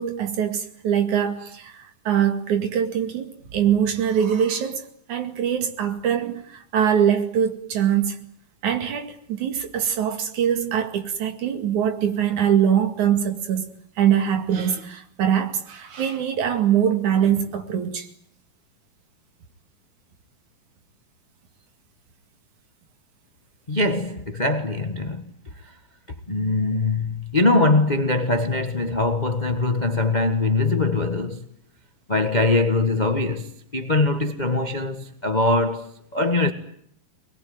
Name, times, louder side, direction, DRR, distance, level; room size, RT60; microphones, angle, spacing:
voice 1, 0.0-8.2 8.6-18.1, right 9 dB, 65° right, 3.5 m, -23 dB
voice 2, 23.7-25.3 25.6-25.7 26.3-31.4 32.1-36.5, left 2 dB, 65° left, 0.4 m, -22 dB
24.0 x 21.0 x 9.4 m
omnidirectional pair, 3.7 m